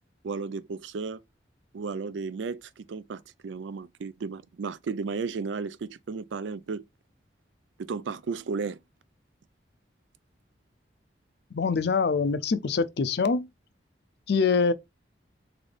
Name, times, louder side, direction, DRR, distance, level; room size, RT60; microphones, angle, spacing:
voice 1, 0.2-1.2 1.7-6.8 7.8-8.8, right 4 dB, 85° right, 0.4 m, -34 dB
voice 2, 11.5-13.5 14.3-14.7, left 5 dB, 65° left, 0.4 m, -24 dB
4.0 x 3.7 x 3.3 m
head